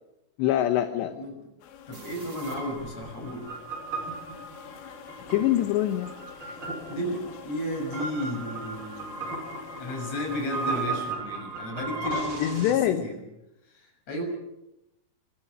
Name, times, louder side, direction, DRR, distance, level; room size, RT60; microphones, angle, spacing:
voice 1, 0.4-1.1 5.3-6.1 6.4-6.6 12.4-13.0, left 12 dB, 75° left, 8 dB, 3.0 m, -24 dB
voice 2, 1.0-1.4 1.9-3.5 6.9-9.2 9.8-13.2 13.7-14.2, equal, 35° left, 2 dB, 7.7 m, -33 dB
sound 1, 1.6-11.2, left 8 dB, 90° left, 4.3 m, -47 dB
sound 2, 1.9-12.7, right 3 dB, 25° right, 6.5 m, -36 dB
26.5 x 26.5 x 6.3 m, 0.92 s
omnidirectional pair, 5.6 m